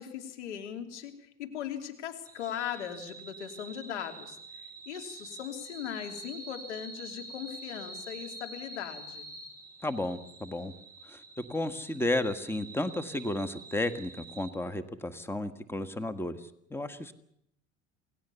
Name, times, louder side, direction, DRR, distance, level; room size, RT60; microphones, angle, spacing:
voice 1, 0.0-4.4 4.9-9.3, left 9 dB, 80° left, 5 dB, 3.1 m, -39 dB
sound 1, 2.2-14.5, right 2 dB, 10° right, 6.3 m, -47 dB
voice 2, 9.8-10.7 11.1-17.1, left 1 dB, 5° left, 10 dB, 1.7 m, -33 dB
28.0 x 18.5 x 7.0 m, 0.75 s
hypercardioid pair, 70°, 34 cm